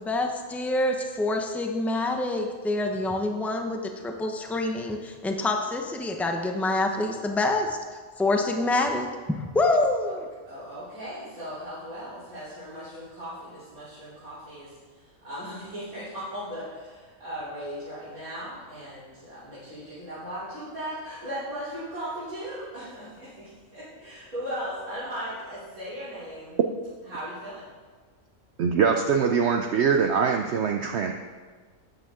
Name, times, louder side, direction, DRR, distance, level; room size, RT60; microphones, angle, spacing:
voice 1, 0.0-7.8 8.2-10.3, left 2 dB, ahead, 3 dB, 0.5 m, -26 dB
voice 2, 10.5-26.6 27.0-27.6, equal, 85° right, -14 dB, 3.7 m, -37 dB
voice 3, 28.6-31.1, right 6 dB, 60° right, 3 dB, 0.8 m, -23 dB
12.5 x 8.9 x 3.7 m, 1.5 s
omnidirectional pair, 1.5 m